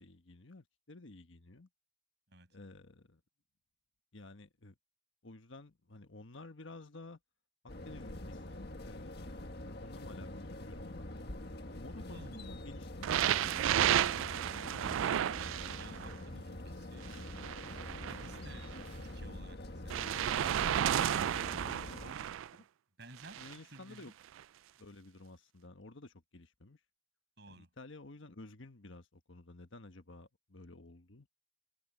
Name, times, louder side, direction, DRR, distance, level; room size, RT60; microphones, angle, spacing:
voice 1, 0.0-1.7 2.5-3.2 4.1-4.8 5.2-7.2 7.8-9.3 9.6-11.1 11.6-14.2 23.4-24.1 24.8-26.8 27.5-31.3, left 2 dB, 65° left, 1.3 m, -53 dB
sound 1, 7.7-22.1, left 1 dB, 50° left, 1.8 m, -45 dB
voice 2, 12.1-12.5 14.9-17.1 18.0-21.0 21.3-22.7 23.0-24.1 27.4-27.7, right 2 dB, 55° right, 7.0 m, -55 dB
sound 2, 13.0-16.2 17.0-18.9 19.9-22.5 23.2-23.6 24.4-24.5, right 10 dB, 70° right, 0.3 m, -32 dB
head